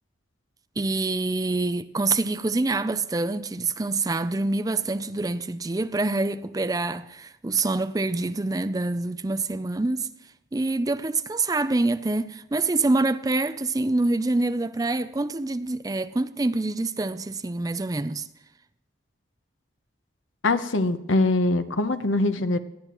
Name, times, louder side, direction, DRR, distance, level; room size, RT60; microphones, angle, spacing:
voice 1, 0.8-10.1 10.5-18.3, right 2 dB, 20° right, 0.4 m, -26 dB
voice 2, 20.4-22.6, left 2 dB, 85° left, 1.0 m, -23 dB
19.5 x 13.5 x 3.0 m
head